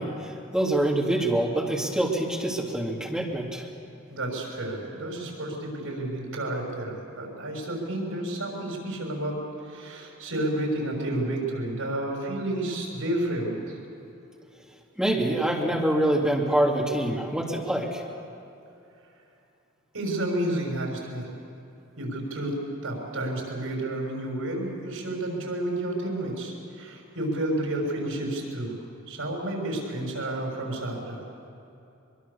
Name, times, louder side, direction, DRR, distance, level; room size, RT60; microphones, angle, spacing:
voice 1, 0.0-3.7 15.0-18.0, right 1 dB, 5° right, -2 dB, 2.6 m, -25 dB
voice 2, 4.1-9.4 9.6-13.8 19.9-21.3 22.0-28.7 29.1-31.2, right 1 dB, 85° right, 0 dB, 6.5 m, -31 dB
23.5 x 23.0 x 7.0 m, 2.7 s
head